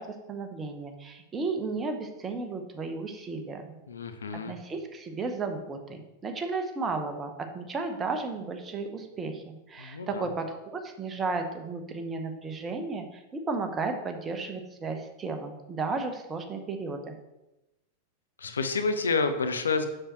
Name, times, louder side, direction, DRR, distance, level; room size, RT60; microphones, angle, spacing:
voice 1, 0.0-3.8 4.5-17.1, right 3 dB, 20° right, 5 dB, 0.9 m, -34 dB
voice 2, 3.9-4.5 9.8-10.3 18.4-19.9, left 4 dB, 70° left, 8 dB, 0.6 m, -29 dB
7.6 x 6.4 x 3.1 m, 0.97 s
figure-of-eight pair, 90°, 0 cm